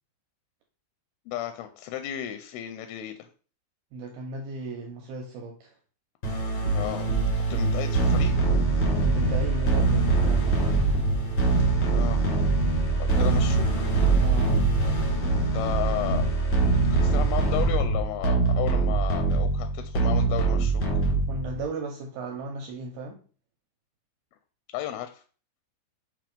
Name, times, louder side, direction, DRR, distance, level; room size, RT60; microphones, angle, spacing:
voice 1, 1.3-3.2 6.7-7.1 7.5-8.3 11.9-12.2 13.0-13.9 15.5-16.3 16.6-21.0 24.7-25.2, left 12 dB, 80° left, 8 dB, 2.3 m, -34 dB
voice 2, 3.9-5.8 9.0-10.7 13.1-13.3 14.1-14.6 21.3-23.2, right 2 dB, 75° right, 2 dB, 2.6 m, -36 dB
sound 1, 6.2-21.6, right 3 dB, 50° left, 1.4 m, -23 dB
6.8 x 3.0 x 5.2 m, 0.40 s
omnidirectional pair, 4.8 m